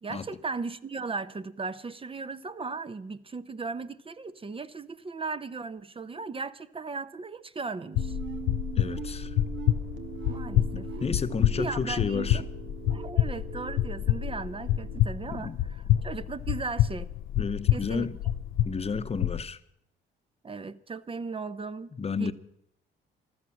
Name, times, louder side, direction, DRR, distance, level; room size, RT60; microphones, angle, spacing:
voice 1, 0.0-8.2 10.3-10.9 11.6-12.5 12.9-17.1 17.7-18.1 20.4-21.9 22.2-22.3, right 4 dB, 25° right, 0.7 m, -37 dB
sound 1, 7.9-19.4, left 12 dB, 85° left, 0.5 m, -28 dB
sound 2, 8.0-15.0, right 8 dB, 75° right, 1.4 m, -41 dB
voice 2, 8.8-9.3 11.0-12.4 15.3-15.6 17.4-18.2 18.6-19.6 21.9-22.3, left 5 dB, 30° left, 0.9 m, -31 dB
14.5 x 12.5 x 7.6 m
cardioid pair, 90°, 20 cm